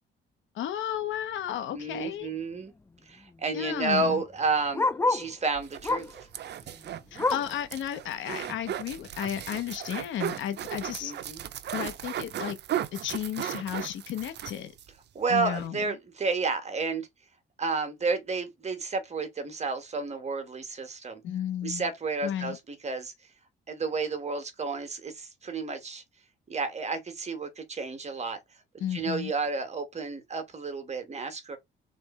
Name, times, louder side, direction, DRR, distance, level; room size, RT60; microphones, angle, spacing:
voice 1, 0.5-2.3 3.5-4.2 7.1-11.1 11.7-12.6 12.9-14.7 15.3-15.9 21.2-21.9 22.2-22.6 28.8-29.3, left 10 dB, 80° left, 1.0 m, -33 dB
Bark, 1.6-1.9 2.2-2.3 2.5-5.4 5.8-6.2 6.6-7.6 8.1-8.2 8.6-8.7 9.3-9.4, left 3 dB, 15° left, 0.3 m, -30 dB
voice 2, 1.7-2.7 3.1-6.1 11.0-11.4 15.1-17.1 17.6-21.2 21.6-23.1 23.7-26.0 26.5-28.4 28.9-31.6, right 4 dB, 35° right, 1.4 m, -31 dB
sound 1, 5.5-14.9 15.2-15.3 15.5-15.7, right 11 dB, 60° right, 0.6 m, -36 dB
3.4 x 3.2 x 4.2 m
cardioid pair, 90°, 20 cm